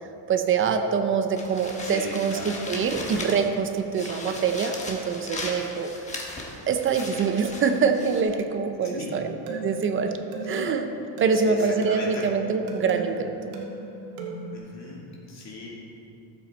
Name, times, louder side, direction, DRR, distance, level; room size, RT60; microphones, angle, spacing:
voice 1, 0.3-5.9 6.7-10.1 10.5-10.9 11.2-13.5, right 5 dB, 25° right, 7 dB, 0.5 m, -25 dB
sound 1, 1.4-3.6 3.9-8.2, left 2 dB, 15° left, 1.2 m, -37 dB
voice 2, 1.8-2.6 8.8-9.1 11.4-12.2 14.5-15.7, left 2 dB, 30° left, -4 dB, 2.4 m, -38 dB
sound 2, 9.1-14.5, right 1 dB, 85° right, 2.0 m, -36 dB
14.0 x 8.0 x 4.3 m, 2.7 s
cardioid pair, 155°, 50 cm